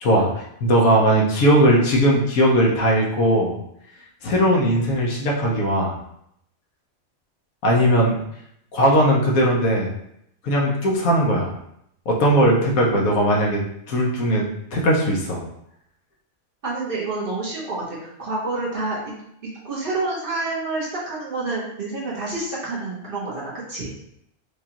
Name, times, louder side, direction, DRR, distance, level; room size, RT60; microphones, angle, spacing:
voice 1, 0.0-3.6 4.2-6.0 7.6-8.2 8.7-9.9 10.4-11.5 12.1-13.6 13.9-14.5 14.7-15.4, equal, 80° left, -2 dB, 1.3 m, -18 dB
voice 2, 16.6-19.1 19.4-23.9, right 2 dB, 45° right, -6 dB, 1.1 m, -28 dB
4.9 x 2.4 x 2.9 m, 0.75 s
omnidirectional pair, 1.4 m